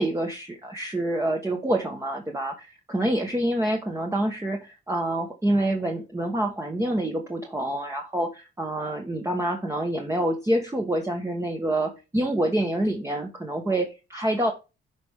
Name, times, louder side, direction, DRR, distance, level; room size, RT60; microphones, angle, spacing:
voice 1, 0.0-14.5, right 1 dB, 15° right, 1 dB, 1.8 m, -27 dB
10.5 x 5.1 x 3.8 m, 0.28 s
cardioid pair, 90°, 20 cm